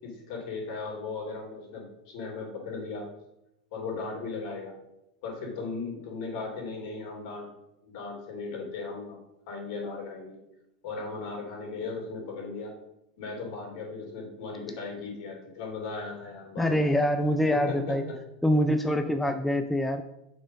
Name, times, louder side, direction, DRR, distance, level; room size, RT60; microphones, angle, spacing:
voice 1, 0.0-3.0 3.7-4.8 5.2-7.5 7.8-9.2 9.5-10.4 10.8-12.7 13.2-16.9 17.5-18.2, left 4 dB, 60° left, -1 dB, 3.0 m, -37 dB
voice 2, 16.6-18.0 18.4-20.0, equal, 5° left, 7 dB, 0.4 m, -25 dB
7.1 x 4.6 x 5.2 m, 0.86 s
hypercardioid pair, 120°, 4 cm